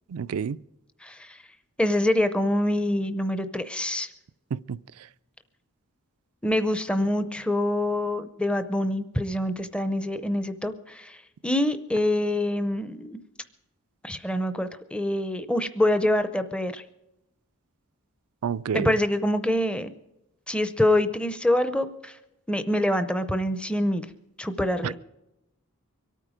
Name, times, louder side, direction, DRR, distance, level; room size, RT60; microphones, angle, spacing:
voice 1, 0.1-0.6 4.5-4.8 18.4-18.9 24.8-25.0, right 7 dB, 75° right, 0.4 m, -29 dB
voice 2, 1.0-1.4 1.8-4.1 6.4-11.2 11.4-13.2 14.0-16.8 18.7-19.9 20.5-22.2 22.5-24.1 24.4-25.0, left 1 dB, 5° left, 0.6 m, -25 dB
24.5 x 9.1 x 4.9 m
head